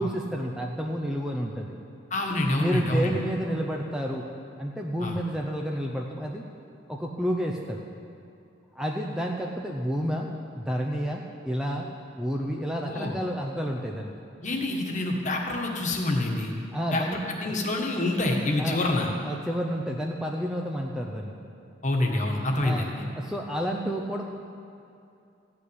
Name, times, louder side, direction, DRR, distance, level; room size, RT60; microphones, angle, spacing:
voice 1, 0.0-1.8 2.6-4.2 4.6-6.5 6.9-7.8 8.7-11.9 12.2-14.1 16.7-17.5 18.6-18.8 19.2-21.4 22.6-24.2, equal, 5° right, 0 dB, 0.6 m, -30 dB
voice 2, 2.1-3.1 5.0-5.2 12.9-13.1 14.4-16.5 16.9-19.1 21.8-22.9, left 2 dB, 35° left, 1 dB, 1.5 m, -27 dB
15.0 x 6.0 x 9.6 m, 2.6 s
head